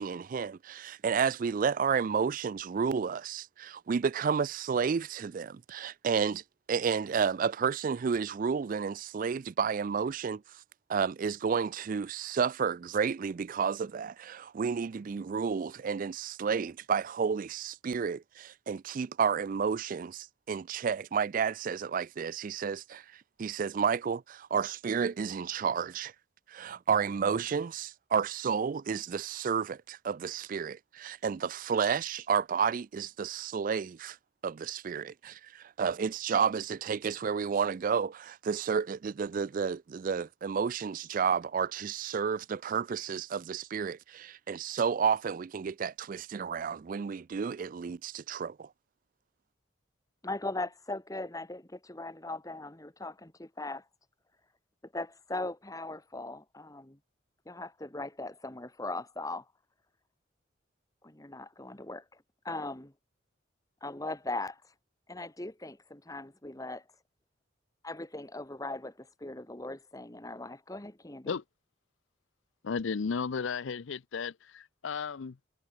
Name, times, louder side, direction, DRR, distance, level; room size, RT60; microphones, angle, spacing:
voice 1, 0.0-6.4 6.7-10.4 10.9-26.1 26.5-34.2 34.4-48.7, right 6 dB, 45° right, 0.3 m, -31 dB
voice 2, 50.2-53.8 54.9-57.0 57.4-59.4 61.0-62.0 62.4-62.9 63.8-64.6 65.1-66.8 67.8-71.3, left 2 dB, 15° left, 1.4 m, -39 dB
voice 3, 72.6-75.4, left 5 dB, 70° left, 0.5 m, -34 dB
head